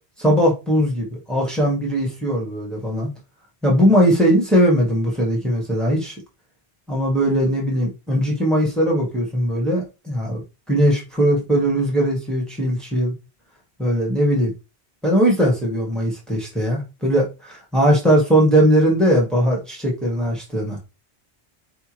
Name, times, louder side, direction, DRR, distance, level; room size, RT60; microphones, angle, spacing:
voice 1, 0.2-3.1 3.6-6.1 6.9-10.4 10.7-13.1 13.8-14.5 15.0-20.8, equal, ahead, 1.5 m, -19 dB
4.3 x 3.5 x 3.0 m
omnidirectional pair, 1.1 m